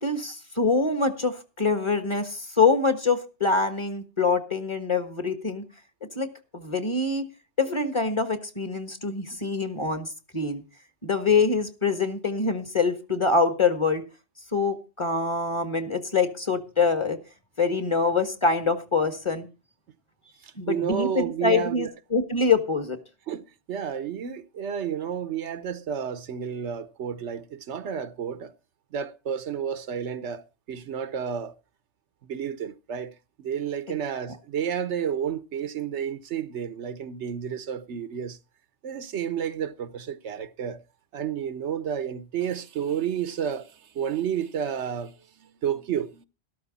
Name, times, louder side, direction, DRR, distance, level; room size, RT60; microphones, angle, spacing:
voice 1, 0.0-5.6 6.1-7.2 7.6-10.6 11.0-14.0 14.5-17.2 17.6-19.5 20.6-23.0, left 4 dB, 25° left, 1.4 m, -25 dB
voice 2, 20.4-21.9 23.3-28.5 28.9-31.5 32.2-38.4 38.8-40.8 41.1-46.3, right 8 dB, 90° right, 1.2 m, -31 dB
13.0 x 12.5 x 4.0 m
omnidirectional pair, 1.2 m